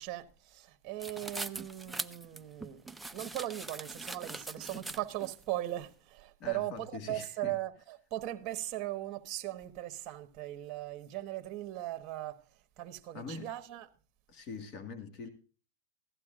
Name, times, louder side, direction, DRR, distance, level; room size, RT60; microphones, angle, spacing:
voice 1, 0.0-12.4 12.8-13.9, right 15 dB, 35° right, 1.4 m, -39 dB
sound 1, 1.0-5.3, right 2 dB, 5° right, 0.4 m, -42 dB
voice 2, 6.4-7.5 13.1-13.5 14.3-15.3, left 4 dB, 40° left, 1.8 m, -43 dB
15.5 x 12.0 x 2.5 m
supercardioid pair, 135°, 0 cm